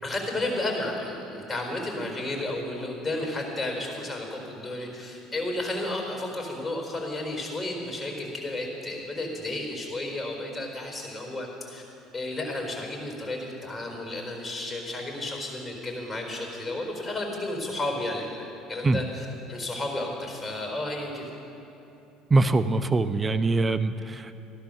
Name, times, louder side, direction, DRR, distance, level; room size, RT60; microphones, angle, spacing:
voice 1, 0.0-11.8 12.1-21.3, left 1 dB, 15° left, 1 dB, 4.4 m, -32 dB
voice 2, 22.3-24.3, right 3 dB, 25° right, 12 dB, 0.7 m, -23 dB
15.0 x 12.0 x 6.7 m, 2.8 s
supercardioid pair, 90°, 0 cm